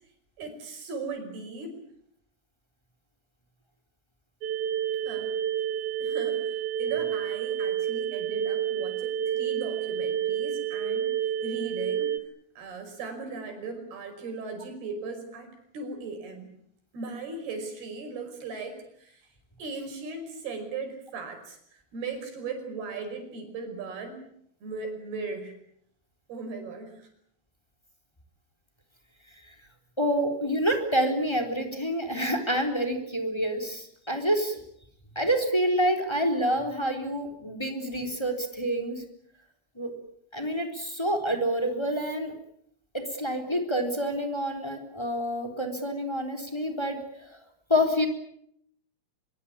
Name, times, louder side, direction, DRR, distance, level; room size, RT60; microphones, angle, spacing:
voice 1, 0.4-1.8 5.1-5.3 6.0-11.1 11.4-12.1 12.6-15.5 15.7-16.5 16.9-19.2 19.6-21.6 21.9-24.2 24.6-25.5 26.3-27.1, right 4 dB, 80° right, 6 dB, 7.4 m, -37 dB
sound 1, 4.4-12.2, right 9 dB, 60° right, 2.7 m, -29 dB
voice 2, 30.0-34.6 35.1-39.0 39.8-39.9 40.3-42.3 42.9-47.0 47.7-48.1, equal, 5° left, 6 dB, 3.1 m, -27 dB
24.0 x 23.5 x 8.8 m, 0.71 s
omnidirectional pair, 4.4 m